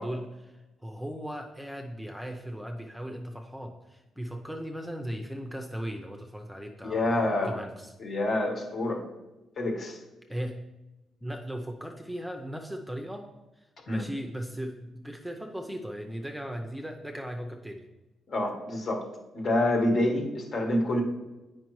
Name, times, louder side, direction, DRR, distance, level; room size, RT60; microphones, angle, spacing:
voice 1, 0.0-7.9 10.3-10.6 11.2-13.3 13.6-17.9, equal, 5° right, 3 dB, 0.6 m, -37 dB
voice 2, 6.8-7.6 8.0-9.0 9.6-10.0 13.9-14.0 18.3-19.1 19.3-21.0, left 1 dB, 50° left, 1 dB, 1.3 m, -27 dB
8.5 x 5.1 x 3.1 m, 1.1 s
cardioid pair, 105°, 0 cm